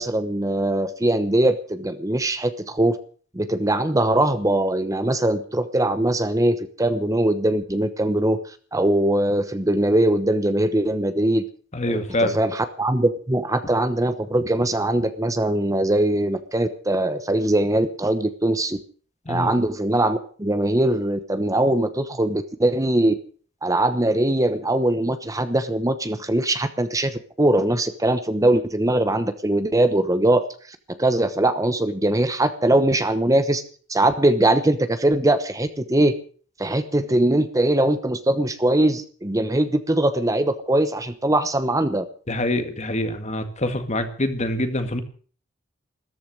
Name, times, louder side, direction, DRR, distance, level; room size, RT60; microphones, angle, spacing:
voice 1, 0.0-3.0 3.3-8.4 8.7-11.4 11.9-18.8 19.3-23.1 23.6-30.4 31.0-33.6 33.9-36.2 36.6-42.0, right 1 dB, 15° right, 10 dB, 1.0 m, -21 dB
voice 2, 11.7-12.4 19.3-19.5 42.3-45.0, left 1 dB, 35° left, 9 dB, 1.9 m, -25 dB
14.0 x 14.0 x 6.3 m, 0.42 s
head